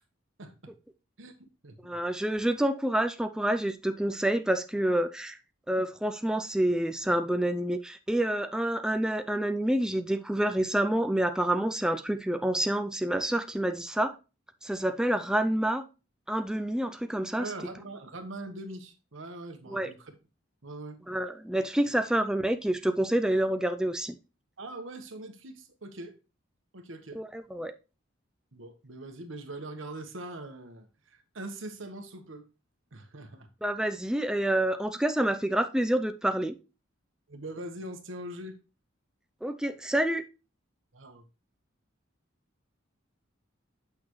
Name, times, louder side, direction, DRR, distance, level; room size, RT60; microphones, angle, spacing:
voice 1, 0.4-0.7 1.2-2.0 17.4-20.1 20.6-21.0 24.6-26.1 26.7-27.2 28.5-32.5 32.9-33.5 37.3-38.6 40.9-41.2, right 2 dB, 85° right, 1.3 m, -42 dB
voice 2, 1.8-5.4 5.7-14.1 14.6-15.8 16.3-17.5 19.7-19.9 21.1-24.2 27.1-27.7 33.6-36.5 39.4-40.2, right 1 dB, 5° right, 0.4 m, -28 dB
8.5 x 6.2 x 3.1 m
head